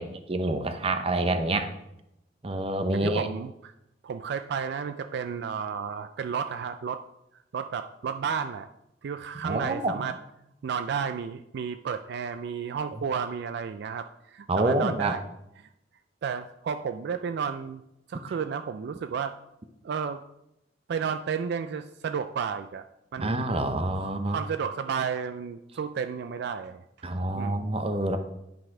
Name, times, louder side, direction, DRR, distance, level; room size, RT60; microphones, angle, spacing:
voice 1, 0.0-1.7 2.4-3.3 9.4-10.1 14.5-15.2 23.2-24.4 27.0-28.2, right 2 dB, 30° right, 8 dB, 0.7 m, -27 dB
voice 2, 2.9-3.7 4.0-7.0 7.5-8.7 9.0-10.2 10.6-15.2 15.6-15.7 16.2-17.8 18.1-19.3 19.8-20.2 20.9-22.9 23.1-23.4 23.9-26.8 27.4-27.7, right 6 dB, 65° right, 9 dB, 0.3 m, -32 dB
10.5 x 4.0 x 4.8 m, 0.85 s
head